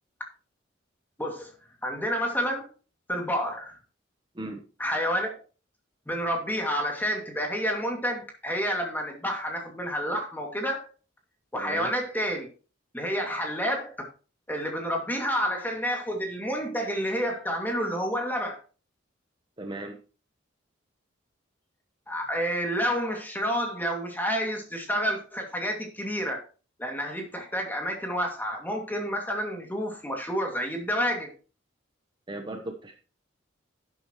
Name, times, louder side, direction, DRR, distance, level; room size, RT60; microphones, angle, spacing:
voice 1, 1.2-1.5 1.8-2.7 3.1-3.8 4.8-5.4 6.1-10.9 11.5-12.5 12.9-13.9 14.5-18.6 22.1-26.5 26.8-31.3, equal, 10° left, 2.5 m, -29 dB
voice 2, 11.5-11.9 19.6-20.0 32.3-33.0, right 2 dB, 25° right, 1.1 m, -37 dB
11.5 x 8.6 x 3.1 m
head